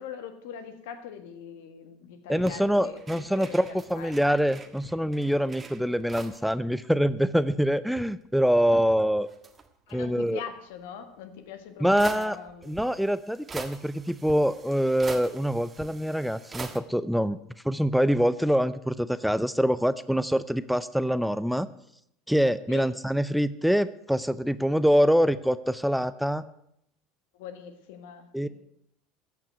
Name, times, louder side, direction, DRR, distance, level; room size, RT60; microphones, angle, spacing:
voice 1, 0.0-4.2 9.9-12.8 22.7-22.9 27.3-28.5, left 8 dB, 75° left, 9 dB, 1.7 m, -42 dB
voice 2, 2.3-9.3 9.9-10.4 11.8-12.4 12.6-17.4 17.6-21.7 22.3-26.4 28.3-28.5, equal, ahead, 15 dB, 0.5 m, -25 dB
sound 1, 2.4-6.5 6.8-6.9 7.1-8.2 8.8-10.1 11.2-11.3 12.0-16.8, right 5 dB, 25° right, 1.6 m, -44 dB
14.5 x 5.9 x 9.0 m, 0.75 s
hypercardioid pair, 85°, 0 cm